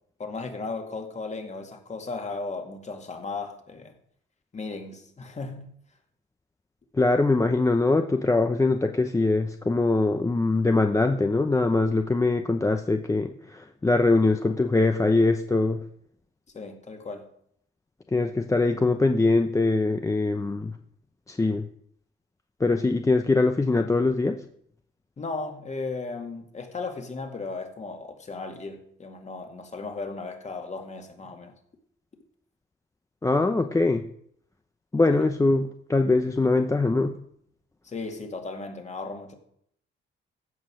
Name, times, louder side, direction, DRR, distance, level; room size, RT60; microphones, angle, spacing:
voice 1, 0.2-4.0 4.5-5.7 16.5-17.3 25.2-31.5 35.1-35.2 37.8-39.4, left 3 dB, 35° left, 2.2 m, -36 dB
voice 2, 6.9-15.8 18.1-20.7 21.3-21.7 22.6-24.4 33.2-34.0 34.9-37.1, left 3 dB, 15° left, 0.7 m, -22 dB
15.5 x 5.5 x 6.4 m
cardioid pair, 90°, 20 cm